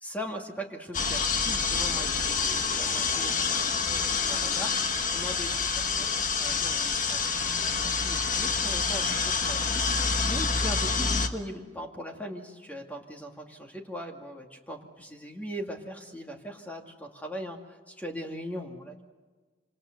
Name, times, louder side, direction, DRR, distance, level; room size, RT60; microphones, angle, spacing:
voice 1, 0.0-4.7 5.1-5.5 6.0-9.9 10.2-19.0, equal, 10° left, 2 dB, 2.3 m, -40 dB
sound 1, 0.9-11.3, left 5 dB, 50° left, 1.4 m, -27 dB
26.5 x 26.0 x 6.6 m, 1.4 s
head